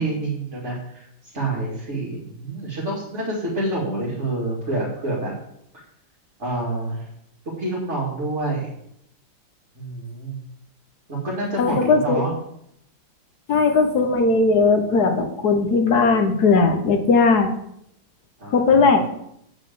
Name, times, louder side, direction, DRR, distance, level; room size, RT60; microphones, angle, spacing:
voice 1, 0.0-5.3 6.4-7.1 7.6-8.7 9.7-10.4 11.1-12.3 18.4-18.9, right 2 dB, 40° right, -6 dB, 2.7 m, -27 dB
voice 2, 11.6-12.2 13.5-17.5 18.5-19.0, left 4 dB, 60° left, 5 dB, 1.6 m, -18 dB
8.0 x 6.0 x 7.6 m, 0.76 s
omnidirectional pair, 2.0 m